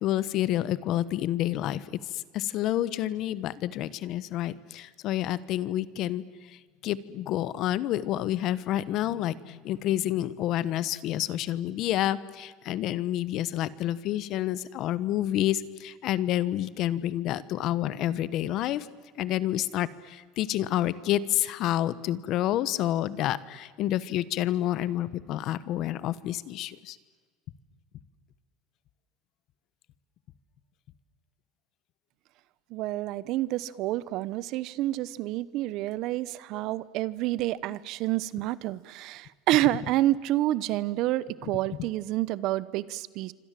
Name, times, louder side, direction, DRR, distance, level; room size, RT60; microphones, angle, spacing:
voice 1, 0.0-6.6 6.8-18.9 19.2-27.0 36.5-36.7 41.4-41.5, left 13 dB, 55° left, 17 dB, 1.2 m, -29 dB
voice 2, 32.7-43.3, right 15 dB, 60° right, 19 dB, 0.9 m, -28 dB
27.5 x 25.5 x 7.6 m, 1.5 s
supercardioid pair, 120°, 0 cm